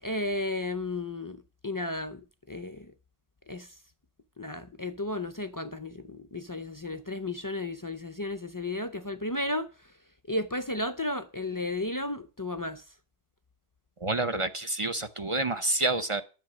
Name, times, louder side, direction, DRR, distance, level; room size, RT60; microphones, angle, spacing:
voice 1, 0.0-2.9 3.5-3.7 4.4-9.7 10.3-12.8, left 2 dB, 35° left, 0.3 m, -33 dB
voice 2, 14.0-16.2, right 2 dB, 35° right, 0.6 m, -28 dB
10.5 x 7.7 x 6.1 m
omnidirectional pair, 1.2 m